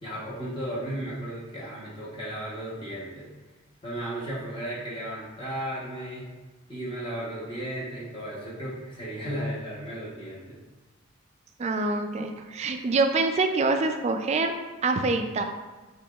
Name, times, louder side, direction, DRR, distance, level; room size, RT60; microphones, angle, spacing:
voice 1, 0.0-3.3 3.8-6.3 6.7-10.6, right 1 dB, 25° left, -6 dB, 0.9 m, -35 dB
voice 2, 11.6-14.5 14.8-15.4, right 3 dB, 35° right, 6 dB, 0.3 m, -25 dB
6.9 x 2.9 x 2.3 m, 1.2 s
head